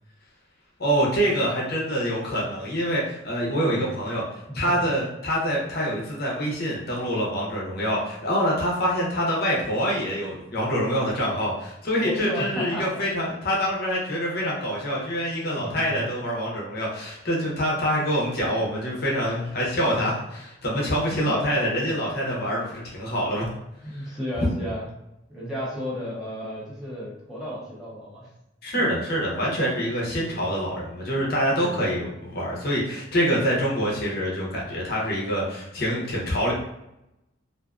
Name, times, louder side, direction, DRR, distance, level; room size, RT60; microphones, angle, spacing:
voice 1, 0.8-23.5 24.0-24.1 28.6-36.5, equal, 50° left, -4 dB, 0.7 m, -26 dB
voice 2, 3.5-3.9 4.6-4.7 12.0-12.9 15.6-15.9 20.7-21.4 23.8-24.9 25.3-28.3 28.7-28.8 30.0-30.5 31.6-31.8, equal, 5° right, -8 dB, 0.7 m, -33 dB
2.5 x 2.4 x 2.3 m, 0.87 s
head